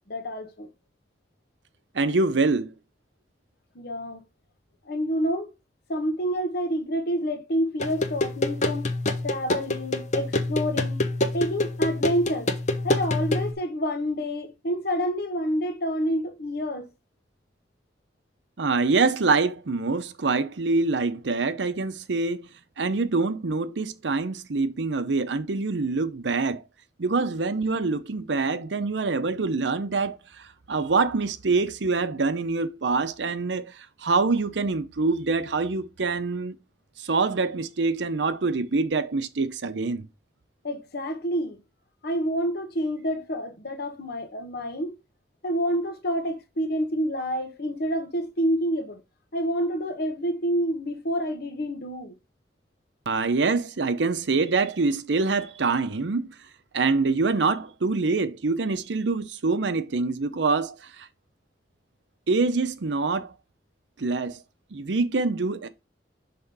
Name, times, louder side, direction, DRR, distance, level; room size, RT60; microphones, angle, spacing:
voice 1, 0.1-0.7 3.7-4.2 4.9-5.5 5.9-8.9 9.2-11.0 11.3-12.5 12.8-16.9 40.6-41.6 42.0-45.0 45.4-49.0 49.3-52.2, equal, 60° left, 1.1 m, -28 dB
voice 2, 1.9-2.7 18.6-22.5 22.8-26.6 27.0-36.6 37.0-40.1 53.1-56.3 56.7-61.1 62.3-63.3 64.0-64.4 64.7-65.7, right 3 dB, 80° right, 0.7 m, -25 dB
sound 1, 7.8-13.5, left 2 dB, 45° left, 0.9 m, -26 dB
5.9 x 3.7 x 5.3 m
head